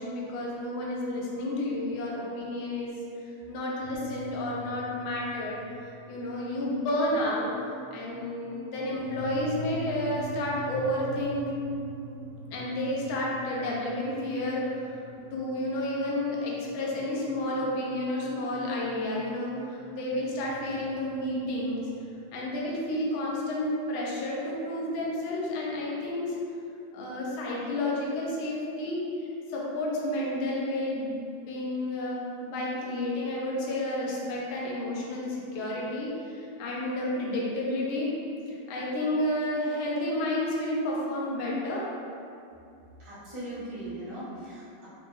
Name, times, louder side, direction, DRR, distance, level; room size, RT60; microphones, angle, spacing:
voice 1, 0.0-3.0 3.5-7.5 7.9-11.5 12.5-14.9 15.3-21.9 22.3-26.3 26.9-38.2 38.5-41.8, left 1 dB, 85° left, -5 dB, 1.1 m, -31 dB
sound 1, 3.8-22.7, right 1 dB, 90° right, 2.0 m, -44 dB
voice 2, 43.0-44.9, right 1 dB, 30° right, -11 dB, 0.5 m, -39 dB
4.3 x 3.0 x 3.5 m, 2.5 s
omnidirectional pair, 3.3 m